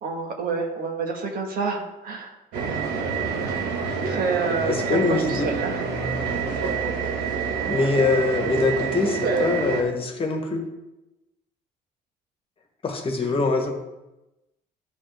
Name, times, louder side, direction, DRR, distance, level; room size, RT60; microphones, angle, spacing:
voice 1, 0.0-2.3 4.0-5.8 13.2-13.4, right 4 dB, 60° right, 2 dB, 1.4 m, -28 dB
sound 1, 2.5-9.8, right 5 dB, 90° right, 1.2 m, -27 dB
voice 2, 4.6-5.5 7.7-10.6 12.8-13.7, left 3 dB, 35° left, 3 dB, 1.3 m, -23 dB
12.5 x 4.2 x 3.4 m, 0.99 s
cardioid pair, 110°, 17 cm